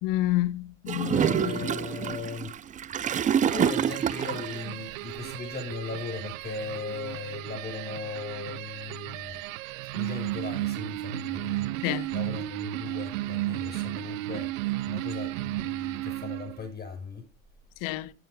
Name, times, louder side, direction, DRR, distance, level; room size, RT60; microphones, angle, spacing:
voice 1, 0.0-1.7 11.8-12.1 17.8-18.1, left 15 dB, 55° left, 1.2 m, -29 dB
Gurgling / Toilet flush, 0.9-4.6, right 9 dB, 20° right, 0.4 m, -27 dB
voice 2, 1.2-2.6 3.5-9.3 9.9-11.9 12.1-14.5 14.9-17.2, left 5 dB, 25° left, 7.8 m, -38 dB
sound 1, 3.5-16.6, right 17 dB, 70° right, 0.9 m, -34 dB
15.0 x 11.5 x 2.2 m
hypercardioid pair, 90°, 40 cm